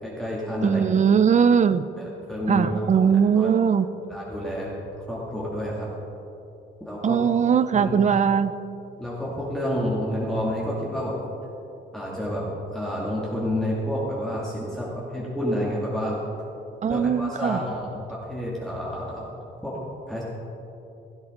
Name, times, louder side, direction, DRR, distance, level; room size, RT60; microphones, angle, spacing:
voice 1, 0.0-0.8 2.3-3.1 3.4-3.5 4.1-4.7 5.1-5.9 6.8-7.2 7.6-7.9 9.0-11.1 11.9-12.5 12.7-16.2 16.9-19.2 19.6-19.8 20.1-20.2, equal, ahead, -7 dB, 2.4 m, -29 dB
voice 2, 0.6-1.9 2.5-3.9 7.0-8.5 16.8-17.6, right 7 dB, 35° right, 14 dB, 0.5 m, -20 dB
16.0 x 9.5 x 3.8 m, 2.9 s
cardioid pair, 90°, 20 cm